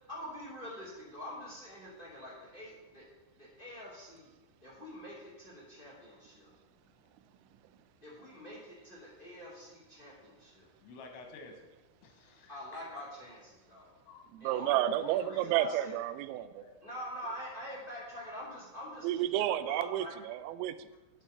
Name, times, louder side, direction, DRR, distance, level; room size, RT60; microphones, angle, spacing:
voice 1, 0.1-3.0 3.4-4.3 4.6-6.5 8.0-10.7 12.5-13.9 14.4-15.9 16.8-20.1, equal, 30° left, -6 dB, 0.9 m, -45 dB
voice 2, 10.8-11.5 12.0-12.8 14.1-14.3 16.6-16.8 19.6-19.8, left 3 dB, 80° left, 4 dB, 3.8 m, -51 dB
voice 3, 14.3-16.6 19.0-20.9, right 12 dB, 85° right, 12 dB, 3.2 m, -31 dB
9.7 x 7.1 x 5.5 m, 1.1 s
omnidirectional pair, 5.9 m